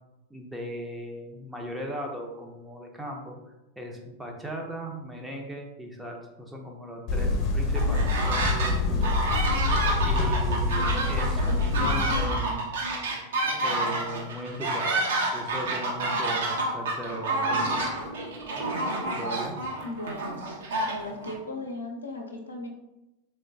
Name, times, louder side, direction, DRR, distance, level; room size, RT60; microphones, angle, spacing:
voice 1, 0.3-3.4 3.8-9.3 10.0-12.7 13.6-17.9 19.1-19.6, equal, 5° right, 1 dB, 0.6 m, -38 dB
sound 1, 7.1-12.2, left 3 dB, 35° left, 0.8 m, -26 dB
sound 2, 7.7-8.7 9.0-21.3, right 2 dB, 60° right, 0.7 m, -29 dB
sound 3, 14.1-17.1 17.5-19.2 19.8-19.9, right 1 dB, 35° right, 0.9 m, -43 dB
voice 2, 19.8-20.4 20.9-22.7, left 2 dB, 75° left, 1 dB, 0.6 m, -37 dB
3.6 x 3.2 x 2.6 m, 0.96 s
figure-of-eight pair, 90°, 0 cm